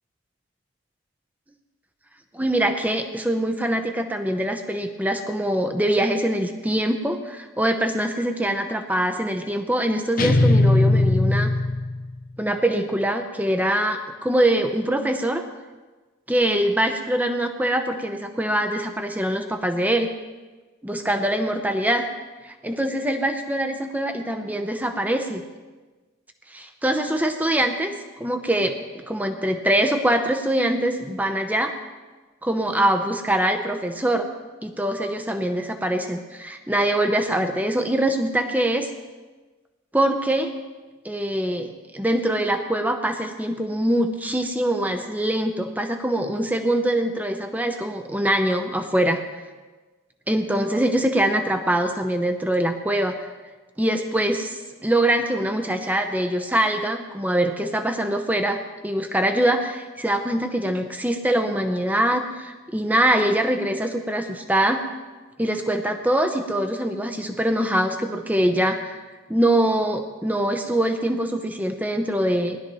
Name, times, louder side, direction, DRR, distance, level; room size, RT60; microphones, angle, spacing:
voice 1, 2.3-11.5 12.4-15.4 16.3-20.1 20.8-22.1 22.4-25.4 26.5-27.9 28.2-31.7 32.4-34.3 34.6-38.9 39.9-40.5 41.0-49.2 50.3-53.2 53.8-64.8 65.4-68.9 69.3-72.6, right 1 dB, 10° right, 6 dB, 0.7 m, -23 dB
sound 1, 10.2-12.2, left 2 dB, 40° left, 0.6 m, -19 dB
19.5 x 12.0 x 3.1 m, 1.3 s
head